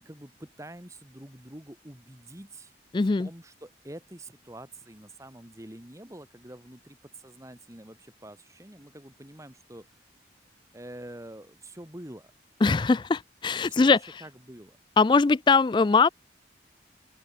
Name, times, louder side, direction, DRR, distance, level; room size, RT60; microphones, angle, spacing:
voice 1, 0.0-2.8 3.2-9.9 10.7-12.3 13.6-14.8, right 1 dB, 15° right, 1.9 m, -46 dB
voice 2, 2.9-3.3 12.6-14.0 15.0-16.1, left 4 dB, 25° left, 0.3 m, -21 dB
open air
head